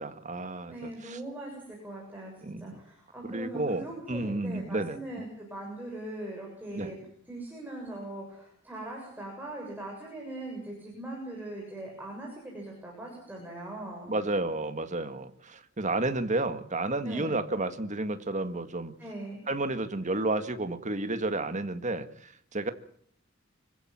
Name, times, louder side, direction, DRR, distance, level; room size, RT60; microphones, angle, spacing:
voice 1, 0.0-1.2 2.4-2.8 3.3-5.0 6.7-6.9 14.1-18.9 19.5-22.7, right 2 dB, 35° right, 9 dB, 1.8 m, -31 dB
voice 2, 0.7-7.0 7.3-14.1 17.0-17.4 19.0-19.4, right 1 dB, 10° right, -2 dB, 7.4 m, -40 dB
26.0 x 15.5 x 7.6 m, 0.68 s
head